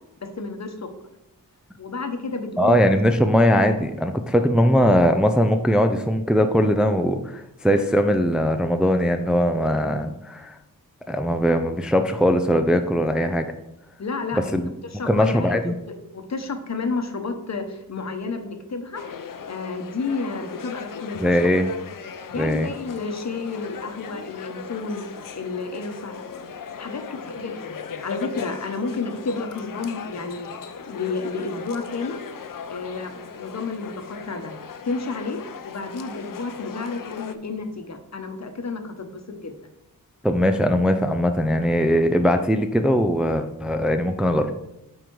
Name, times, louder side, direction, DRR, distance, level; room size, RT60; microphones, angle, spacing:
voice 1, 0.2-0.9 1.8-2.8 14.0-15.6 16.1-19.0 19.4-21.3 22.3-25.0 25.3-26.2 26.8-27.7 28.0-30.5 30.8-32.2 32.7-34.5 34.8-39.5, left 4 dB, 50° left, 6 dB, 1.0 m, -31 dB
voice 2, 2.6-10.6 11.1-13.5 14.3-14.7 15.1-15.8 21.2-21.7 22.4-22.7 40.2-44.5, equal, ahead, 6 dB, 0.4 m, -20 dB
sound 1, 18.9-37.4, left 6 dB, 65° left, 0.7 m, -38 dB
9.2 x 3.9 x 4.7 m, 0.86 s
wide cardioid pair, 95°, 35 cm